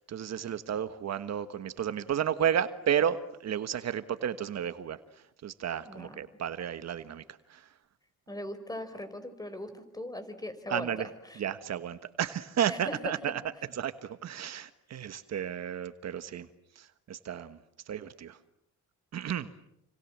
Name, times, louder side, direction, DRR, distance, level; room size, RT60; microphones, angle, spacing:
voice 1, 0.0-3.2 3.4-5.0 5.4-7.2 7.5-7.6 10.7-11.1 11.4-13.4 13.8-16.5 16.8-17.6 17.9-18.4 19.1-19.5, right 9 dB, 60° right, 11 dB, 1.4 m, -32 dB
voice 2, 5.9-6.2 8.3-11.4 12.7-13.1, left 1 dB, 10° left, 11 dB, 4.8 m, -39 dB
28.5 x 26.5 x 7.4 m, 0.79 s
cardioid pair, 90°, 30 cm